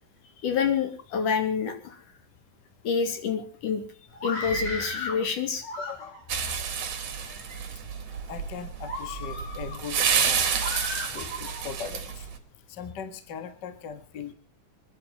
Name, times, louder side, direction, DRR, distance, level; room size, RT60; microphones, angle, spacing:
voice 1, 0.4-2.0 2.8-3.8 4.2-5.6, left 6 dB, 75° left, 6 dB, 4.0 m, -27 dB
Screaming, 4.1-5.2 5.6-6.4 7.0-7.6 8.1-8.3 8.8-9.8 10.6-11.6, left 2 dB, 55° left, 8.0 m, -35 dB
voice 2, 5.8-6.2 8.3-10.4 11.1-12.3 12.7-14.3, left 6 dB, 40° left, 9 dB, 1.9 m, -39 dB
sound 1, 6.3-12.3, right 7 dB, 55° right, 3.1 m, -29 dB
26.5 x 11.0 x 4.2 m, 0.36 s
omnidirectional pair, 3.7 m